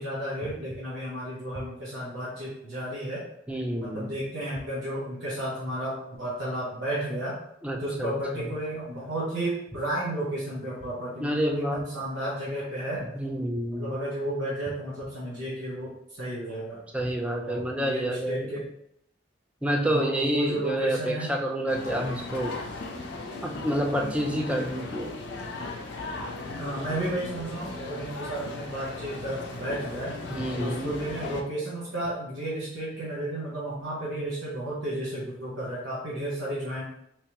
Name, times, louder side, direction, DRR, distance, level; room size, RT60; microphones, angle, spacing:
voice 1, 0.0-3.2 3.8-7.4 7.8-13.1 13.7-16.8 17.4-18.6 19.8-21.3 21.9-22.2 26.5-30.1 30.6-36.9, right 1 dB, 75° right, -7 dB, 1.0 m, -33 dB
voice 2, 3.5-4.1 7.6-8.5 11.2-11.8 13.1-13.9 16.9-18.6 19.6-22.5 23.4-25.1 30.3-31.0, right 1 dB, 5° right, 2 dB, 0.4 m, -28 dB
sound 1, 21.7-31.4, left 2 dB, 60° left, 0.5 m, -37 dB
3.2 x 3.1 x 2.9 m, 0.75 s
head